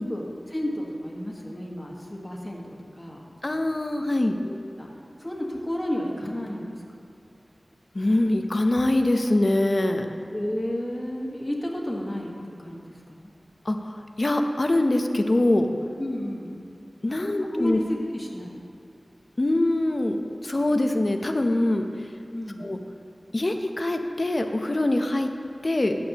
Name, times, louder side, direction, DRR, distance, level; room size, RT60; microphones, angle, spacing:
voice 1, 0.0-3.2 4.4-4.5 4.8-4.9 5.2-6.8 10.3-13.3 16.0-16.6 17.3-18.6 22.3-22.7, left 1 dB, 20° left, -2 dB, 1.5 m, -32 dB
voice 2, 3.4-4.4 7.9-10.1 13.6-15.7 17.0-17.8 19.4-20.2 20.4-21.8 22.6-22.8 23.3-25.3 25.6-25.9, left 1 dB, 50° left, 5 dB, 0.7 m, -23 dB
13.5 x 8.7 x 3.0 m, 2.5 s
wide cardioid pair, 50°, 0 cm